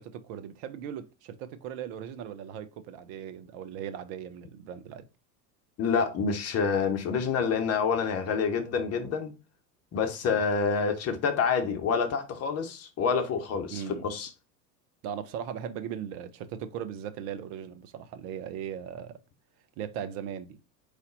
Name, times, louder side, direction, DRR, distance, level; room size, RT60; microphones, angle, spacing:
voice 1, 0.0-5.0 13.7-14.0 15.0-19.2 19.8-20.6, right 9 dB, 45° right, 0.7 m, -38 dB
voice 2, 5.8-9.3 9.9-14.3, left 5 dB, 30° left, 1.0 m, -27 dB
4.0 x 3.3 x 3.9 m
figure-of-eight pair, 80°, 49 cm